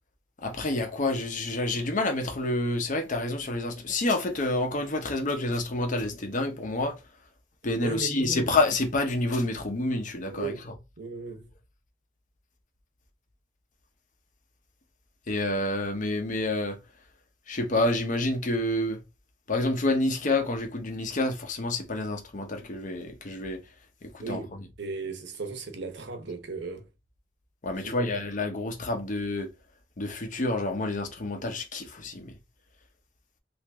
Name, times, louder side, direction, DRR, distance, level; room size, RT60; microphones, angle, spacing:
voice 1, 0.4-6.9 7.6-10.5 15.3-16.8 17.5-19.0 19.5-23.6 24.0-24.4 27.6-29.5 30.0-32.3, left 2 dB, 45° left, 0.7 m, -28 dB
voice 2, 7.8-8.5 10.3-10.6 11.0-11.5 24.2-26.9 27.8-28.2, right 3 dB, 65° right, 0.8 m, -36 dB
3.0 x 2.6 x 3.3 m
head